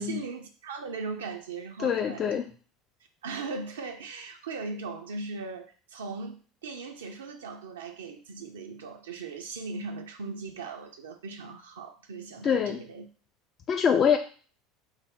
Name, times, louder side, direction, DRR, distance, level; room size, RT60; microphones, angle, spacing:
voice 1, 0.0-2.4 3.2-13.1, right 4 dB, 75° right, 3 dB, 0.4 m, -38 dB
voice 2, 1.8-2.4 12.4-12.8 13.7-14.2, left 7 dB, 40° left, 5 dB, 0.3 m, -24 dB
3.6 x 2.0 x 3.4 m, 0.40 s
figure-of-eight pair, 70°, 0 cm